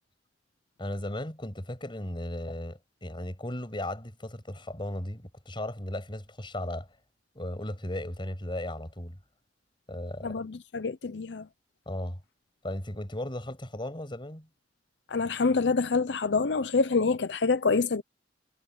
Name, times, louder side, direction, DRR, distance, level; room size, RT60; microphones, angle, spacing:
voice 1, 0.8-6.9 7.3-9.2 9.9-10.4 11.9-12.2 12.6-14.5, left 1 dB, 30° left, 6.2 m, -36 dB
voice 2, 10.2-11.4 15.1-18.0, left 4 dB, 75° left, 0.7 m, -26 dB
head